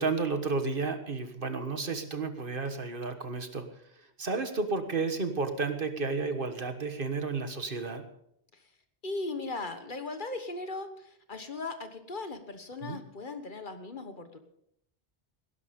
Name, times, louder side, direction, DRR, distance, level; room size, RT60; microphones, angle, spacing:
voice 1, 0.0-3.6 4.2-8.0 12.8-13.0, right 4 dB, 55° right, 8 dB, 1.6 m, -32 dB
voice 2, 9.0-14.4, left 3 dB, 50° left, 8 dB, 1.5 m, -38 dB
18.5 x 11.0 x 5.2 m, 0.74 s
omnidirectional pair, 1.1 m